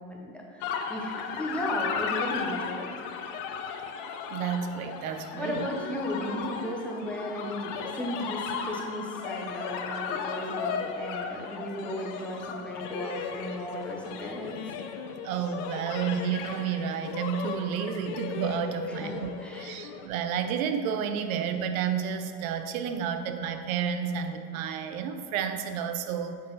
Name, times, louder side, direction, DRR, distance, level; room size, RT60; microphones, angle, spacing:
voice 1, 0.0-3.0 5.3-14.7 18.8-19.8, equal, 5° left, -2 dB, 0.7 m, -35 dB
sound 1, 0.6-20.1, left 6 dB, 65° left, 0.7 m, -36 dB
voice 2, 4.3-5.7 15.2-19.3 19.6-26.4, right 7 dB, 85° right, 8 dB, 0.6 m, -31 dB
7.9 x 3.9 x 3.9 m, 2.2 s
supercardioid pair, 120°, 40 cm